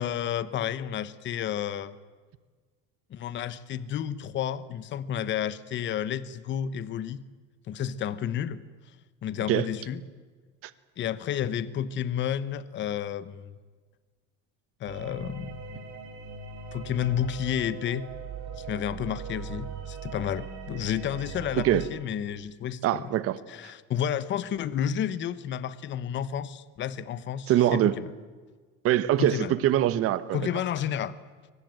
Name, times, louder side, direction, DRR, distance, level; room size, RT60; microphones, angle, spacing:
voice 1, 0.0-2.0 3.1-7.2 7.7-8.6 9.2-10.0 11.0-13.5 14.8-15.6 16.7-18.1 18.6-23.0 23.5-28.1 29.2-29.6 30.3-31.2, left 9 dB, 35° left, 16 dB, 1.0 m, -31 dB
sound 1, 14.9-21.9, right 6 dB, 75° right, 5.1 m, -40 dB
voice 2, 22.8-23.4 27.5-28.0 28.8-30.5, right 13 dB, 45° right, 16 dB, 1.2 m, -23 dB
23.0 x 19.5 x 9.1 m, 1.4 s
cardioid pair, 155°, 31 cm